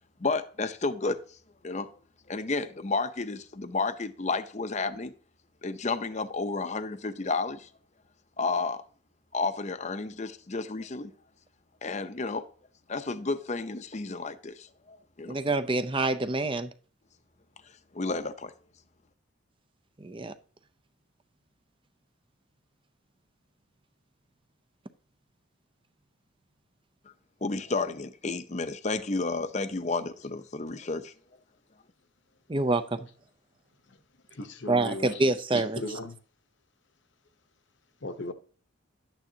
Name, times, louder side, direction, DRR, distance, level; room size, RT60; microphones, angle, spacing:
voice 1, 0.2-1.4 1.6-1.9 2.3-5.1 5.6-7.7 8.4-8.8 9.3-11.1 11.8-12.5 12.9-15.4 17.9-18.5 27.4-31.1, left 3 dB, 35° left, 0.7 m, -31 dB
voice 2, 15.3-16.7 20.0-20.3 32.5-33.1 34.7-36.0, right 2 dB, 25° right, 0.6 m, -27 dB
voice 3, 34.4-35.1 35.5-36.2 38.0-38.3, left 2 dB, 60° left, 1.0 m, -36 dB
12.0 x 9.1 x 2.8 m
head